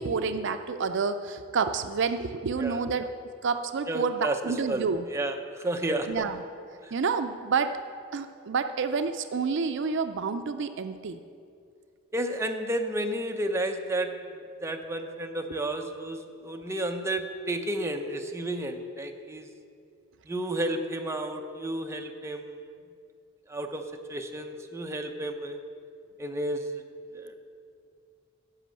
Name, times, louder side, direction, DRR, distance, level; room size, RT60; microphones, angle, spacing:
voice 1, 0.0-3.0 3.4-5.0 6.1-6.4 6.9-7.7 8.1-11.2, right 5 dB, 60° right, 9 dB, 0.5 m, -29 dB
voice 2, 3.9-6.1 6.8-6.9 12.1-14.1 14.6-19.5 20.3-22.6 23.5-25.6 26.2-26.8 27.1-27.4, right 1 dB, 15° right, 4 dB, 0.7 m, -32 dB
10.5 x 6.0 x 7.6 m, 2.3 s
head